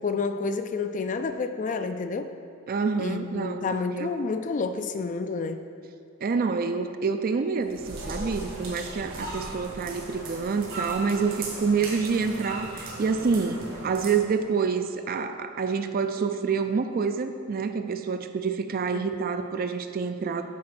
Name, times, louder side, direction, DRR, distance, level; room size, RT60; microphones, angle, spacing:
voice 1, 0.0-2.3 3.0-5.6 18.9-19.1, left 4 dB, 35° left, 9 dB, 0.3 m, -29 dB
voice 2, 2.7-4.2 6.2-20.4, right 5 dB, 45° right, 8 dB, 0.4 m, -27 dB
sound 1, 7.6-14.1, right 2 dB, 70° right, 1.7 m, -37 dB
8.6 x 4.3 x 5.9 m, 2.5 s
head